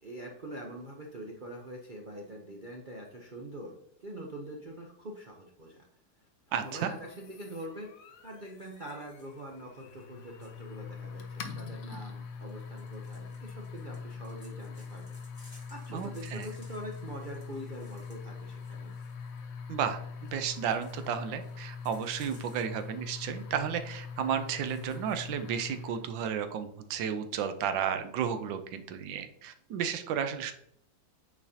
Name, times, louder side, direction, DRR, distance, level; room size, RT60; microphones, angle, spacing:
voice 1, 0.0-5.9 6.6-7.9 8.2-15.2 15.4-18.9, right 1 dB, 65° right, 0 dB, 0.5 m, -44 dB
voice 2, 6.5-6.9 15.9-16.5 19.7-30.5, right 8 dB, 85° right, 8 dB, 1.4 m, -33 dB
sound 1, 6.6-26.1, left 5 dB, 60° left, 1.0 m, -43 dB
sound 2, 8.4-10.6 12.4-19.4 20.2-22.9 23.2-23.4 23.8-23.9 24.4-25.2, left 1 dB, 15° left, 2.4 m, -61 dB
8.8 x 4.2 x 2.8 m, 0.70 s
omnidirectional pair, 2.0 m